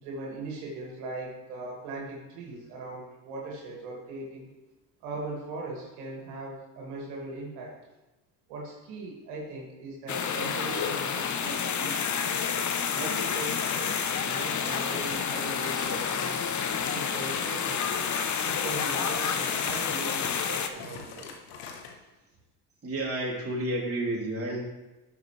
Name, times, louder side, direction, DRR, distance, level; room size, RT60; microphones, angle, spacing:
voice 1, 0.0-4.5 5.0-7.7 8.5-12.0 12.9-16.4 16.9-17.9 18.4-21.3, right 2 dB, 85° right, -3 dB, 2.6 m, -39 dB
sound 1, 10.1-20.7, left 7 dB, 40° left, 1.0 m, -29 dB
sound 2, 12.9-16.4 16.7-17.6 17.9-21.9, left 5 dB, 85° left, 1.4 m, -43 dB
voice 2, 22.8-24.6, right 1 dB, 30° right, -4 dB, 3.4 m, -30 dB
12.0 x 7.1 x 3.4 m, 1.1 s
supercardioid pair, 70°, 46 cm